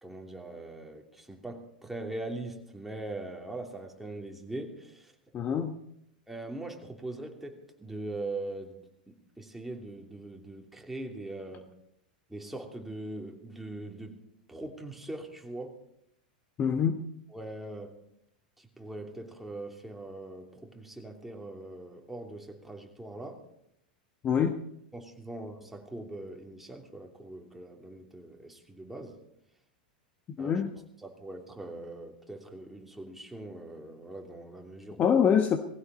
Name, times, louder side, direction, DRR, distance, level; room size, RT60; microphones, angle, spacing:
voice 1, 0.0-5.1 6.3-8.8 9.1-11.7 12.3-15.8 17.3-18.0 18.6-23.4 24.9-29.2 30.4-30.6 31.0-35.1, right 2 dB, 5° right, 1 dB, 3.0 m, -41 dB
voice 2, 5.3-5.8 16.6-17.0 24.2-24.6 30.4-30.7 35.0-35.6, left 7 dB, 30° left, 8 dB, 1.2 m, -24 dB
19.0 x 16.0 x 4.2 m, 0.76 s
hypercardioid pair, 95°, 5 cm